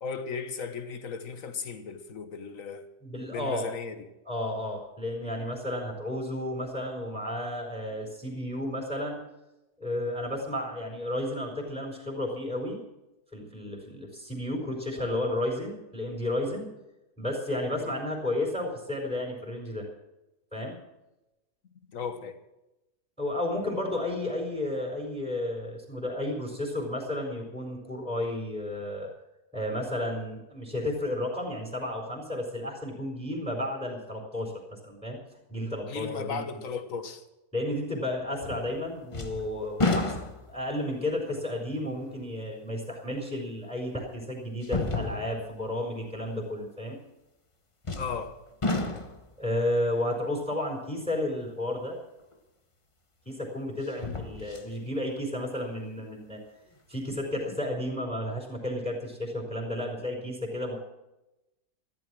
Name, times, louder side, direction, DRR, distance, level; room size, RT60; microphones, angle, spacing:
voice 1, 0.0-2.9 3.3-4.1 17.7-17.9 21.9-22.4 35.9-37.2 48.0-48.4, left 5 dB, 55° left, 1.6 m, -36 dB
voice 2, 3.0-3.7 4.3-9.2 9.8-12.8 13.3-16.7 17.2-19.8 20.5-20.8 23.2-29.1 29.5-34.5 34.8-35.2 35.5-36.4 37.5-40.1 40.5-47.0 49.4-52.0 53.3-56.4 56.9-60.8, left 1 dB, 5° left, 4.1 m, -32 dB
sound 1, 38.4-38.8 39.1-40.7 41.3-41.4 43.3-43.4 44.6-45.5 47.8-48.3 48.6-49.3 52.3-52.4 53.8-54.7 55.2-55.3, left 2 dB, 20° left, 1.0 m, -31 dB
14.5 x 13.0 x 6.2 m
omnidirectional pair, 1.7 m